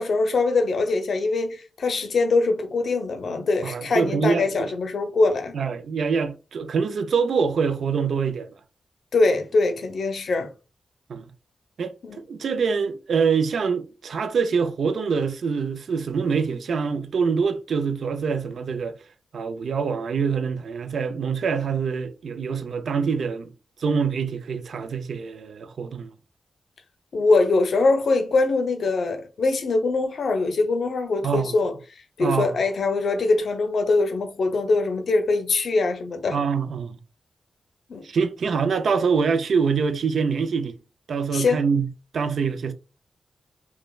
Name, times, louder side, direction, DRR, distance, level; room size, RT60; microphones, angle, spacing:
voice 1, 0.0-5.5 9.1-10.5 12.0-12.2 27.1-36.4 37.9-38.0 41.3-41.6, left 3 dB, 75° left, 0.5 m, -23 dB
voice 2, 3.6-4.7 5.5-8.5 11.1-11.3 11.8-18.9 19.3-23.5 23.8-26.1 31.2-31.5 32.2-32.5 36.3-37.0 38.0-40.8 41.1-41.9 42.1-42.7, right 5 dB, 80° right, 0.3 m, -25 dB
3.1 x 2.1 x 2.2 m
cardioid pair, 80°, 0 cm